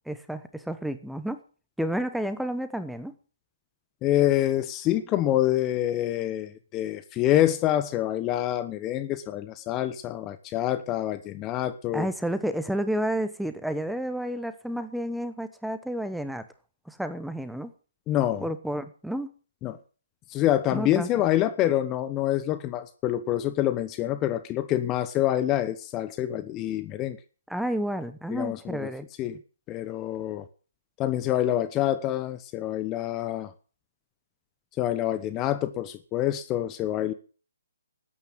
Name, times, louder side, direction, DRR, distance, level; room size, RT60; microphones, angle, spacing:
voice 1, 0.1-1.4 1.8-3.1 11.9-16.5 16.9-17.7 18.4-19.3 20.7-21.1 27.5-29.1, right 1 dB, ahead, 1.1 m, -30 dB
voice 2, 4.0-12.1 18.1-18.4 19.6-19.8 20.3-27.2 28.3-28.9 29.2-29.4 29.7-30.4 31.0-33.5 34.8-37.1, left 13 dB, 20° left, 0.9 m, -26 dB
13.0 x 9.8 x 7.3 m
figure-of-eight pair, 140°, 0 cm